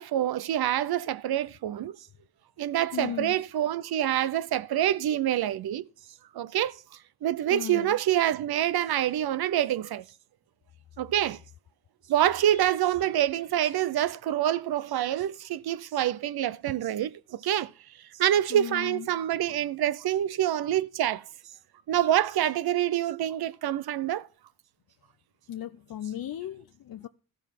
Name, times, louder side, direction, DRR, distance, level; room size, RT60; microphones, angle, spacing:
voice 1, 0.0-2.0 2.6-5.9 6.3-6.8 7.2-10.0 11.0-11.4 12.1-17.7 18.2-21.2 21.9-24.3, right 11 dB, 85° right, 0.6 m, -26 dB
voice 2, 2.9-3.3 7.5-8.0 12.5-12.6 18.5-19.1 25.5-27.1, left 11 dB, 70° left, 0.7 m, -36 dB
14.5 x 5.2 x 5.8 m
wide cardioid pair, 105°, 37 cm